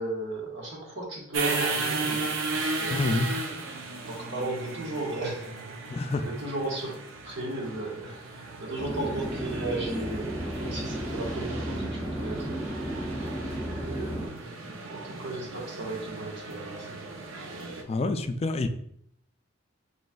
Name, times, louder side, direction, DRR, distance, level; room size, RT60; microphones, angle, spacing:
voice 1, 0.0-3.2 4.0-7.0 7.2-13.3 13.7-17.1, right 2 dB, 65° right, -3 dB, 1.3 m, -36 dB
sound 1, 1.3-17.8, right 3 dB, 80° right, 0.6 m, -35 dB
voice 2, 2.9-3.3 5.9-6.2 17.9-18.7, left 2 dB, 30° left, 8 dB, 0.3 m, -27 dB
sound 2, 8.8-14.3, equal, 15° right, 0.7 m, -33 dB
5.3 x 3.2 x 2.3 m, 0.71 s
head